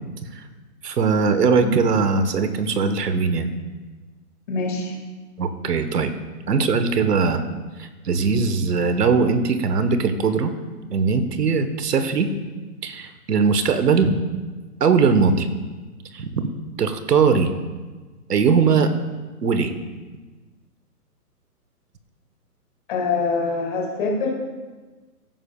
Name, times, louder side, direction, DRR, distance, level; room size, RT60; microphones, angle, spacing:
voice 1, 0.8-3.5 5.4-6.1 6.5-7.4 7.8-10.5 10.9-12.3 12.8-14.2 14.8-15.5 16.1-16.4 16.8-17.5 18.3-18.9 19.4-19.7, right 5 dB, 80° right, 9 dB, 1.3 m, -20 dB
voice 2, 4.5-5.0 22.9-24.3, left 4 dB, 30° left, 0 dB, 2.2 m, -24 dB
16.5 x 9.1 x 2.3 m, 1.3 s
hypercardioid pair, 165°, 47 cm